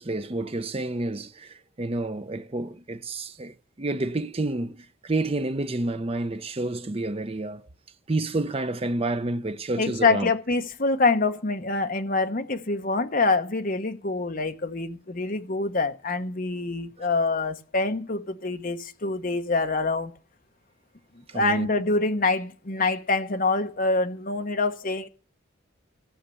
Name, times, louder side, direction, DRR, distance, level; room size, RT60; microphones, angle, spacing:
voice 1, 0.0-7.6 8.1-10.3 17.0-17.1 21.3-21.7, right 2 dB, 30° right, 0.6 m, -29 dB
voice 2, 9.8-20.1 21.3-25.1, left 3 dB, 40° left, 1.0 m, -25 dB
14.0 x 6.6 x 8.3 m
head